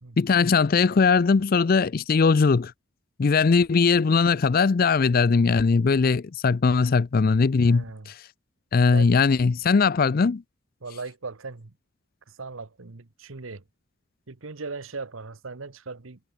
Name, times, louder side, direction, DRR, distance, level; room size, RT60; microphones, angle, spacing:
voice 1, 0.2-2.7 3.2-8.2 8.7-10.4, left 5 dB, 45° left, 0.4 m, -20 dB
voice 2, 7.6-8.1 8.9-9.1 10.8-11.7 12.3-13.6 14.3-16.2, right 4 dB, 80° right, 1.2 m, -38 dB
head